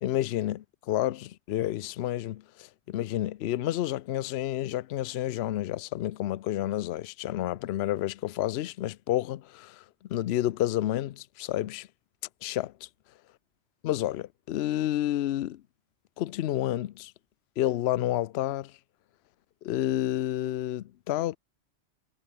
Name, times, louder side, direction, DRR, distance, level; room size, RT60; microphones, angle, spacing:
voice 1, 0.0-9.8 10.1-11.9 12.4-12.9 13.8-15.6 16.2-17.1 17.6-18.7 19.6-21.4, left 13 dB, 65° left, 0.8 m, -30 dB
omnidirectional pair, 1.2 m